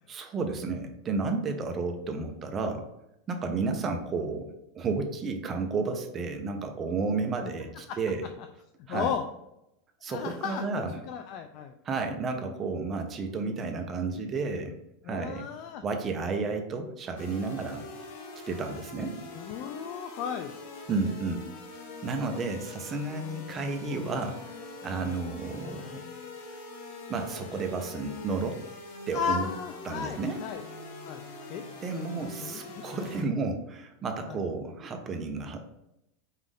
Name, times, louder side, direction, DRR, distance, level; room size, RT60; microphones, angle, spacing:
voice 1, 0.1-2.8 3.3-4.5 4.7-8.3 8.9-9.1 10.0-11.0 11.8-14.8 15.1-15.5 15.8-17.9 18.5-19.1 20.9-21.5 22.0-24.4 24.8-26.0 27.1-28.6 29.1-29.5 29.8-30.4 31.8-35.6, right 4 dB, 20° right, 5 dB, 0.6 m, -32 dB
voice 2, 8.9-9.2 10.1-11.7 15.0-15.8 19.4-20.5 23.8-24.0 25.0-25.2 29.1-30.6 31.1-31.2 31.5-31.6 32.4-32.6 34.3-34.4, left 7 dB, 45° left, 6 dB, 0.3 m, -34 dB
sound 1, 17.2-33.2, left 3 dB, 75° left, 1.0 m, -44 dB
5.5 x 2.5 x 3.5 m, 0.85 s
supercardioid pair, 155°, 0 cm